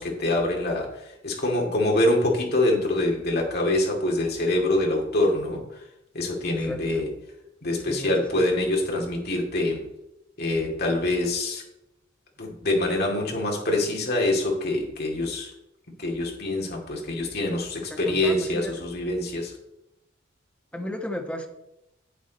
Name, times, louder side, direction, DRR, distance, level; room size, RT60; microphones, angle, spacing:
voice 1, 0.0-5.8 6.1-7.1 7.6-9.8 10.4-11.6 12.4-15.5 16.0-19.5, left 1 dB, 50° left, 0 dB, 2.7 m, -25 dB
voice 2, 6.6-7.0 7.8-8.5 17.9-18.8 20.7-21.5, left 1 dB, 5° left, 3 dB, 1.1 m, -35 dB
9.5 x 8.6 x 4.2 m, 0.88 s
head